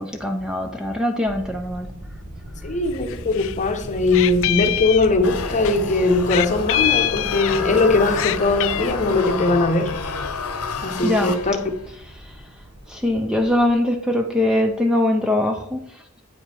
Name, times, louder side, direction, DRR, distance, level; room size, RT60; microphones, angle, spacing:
voice 1, 0.0-1.9 11.0-11.4 12.2-12.3 12.9-15.8, left 1 dB, 5° right, 0.5 m, -22 dB
sound 1, 1.3-13.7, right 1 dB, 35° right, 1.0 m, -37 dB
voice 2, 2.6-9.9 10.8-11.6, left 3 dB, 35° left, 0.9 m, -20 dB
Meow, 2.9-3.6 3.8-5.8 6.3-7.8 8.1-8.9, left 14 dB, 65° left, 0.3 m, -24 dB
sound 2, 5.2-11.9, left 5 dB, 85° left, 0.9 m, -30 dB
8.5 x 5.0 x 4.4 m
head